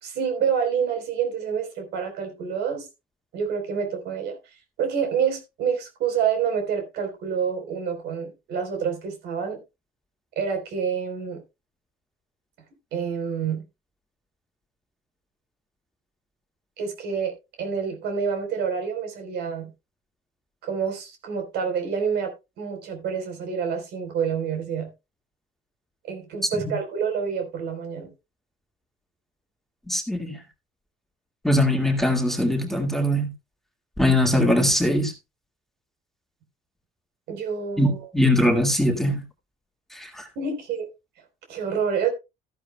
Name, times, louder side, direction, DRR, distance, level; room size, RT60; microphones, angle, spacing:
voice 1, 0.0-2.9 3.3-4.4 4.8-9.6 10.4-11.4 12.9-13.6 16.8-19.7 20.6-24.9 26.1-28.1 37.3-38.1 40.4-40.9 41.5-42.1, right 7 dB, 80° right, 3.9 m, -27 dB
voice 2, 29.9-30.4 31.4-33.3 34.0-35.1 37.8-39.2 39.9-40.3, left 1 dB, ahead, 1.9 m, -21 dB
13.5 x 11.0 x 2.2 m
cardioid pair, 110°, 17 cm